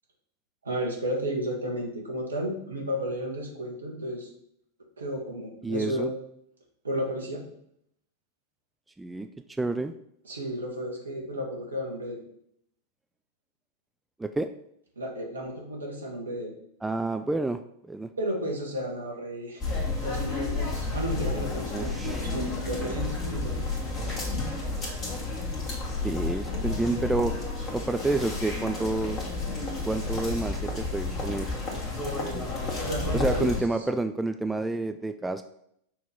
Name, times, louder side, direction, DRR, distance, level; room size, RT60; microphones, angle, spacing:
voice 1, 0.6-4.3 5.0-6.1 6.8-7.4 10.2-12.2 14.9-16.5 18.2-19.6 20.0-23.7 32.8-33.6, equal, 75° right, 0 dB, 1.5 m, -33 dB
voice 2, 5.6-6.1 9.0-9.3 9.6-9.9 14.2-14.5 16.8-17.6 17.9-18.1 21.7-22.2 26.0-27.3 27.7-29.2 29.8-31.6 33.1-35.4, right 2 dB, 10° right, 8 dB, 0.3 m, -29 dB
sound 1, 19.6-33.6, left 3 dB, 25° left, 1.8 m, -31 dB
6.1 x 3.0 x 5.4 m, 0.72 s
figure-of-eight pair, 90°, 0 cm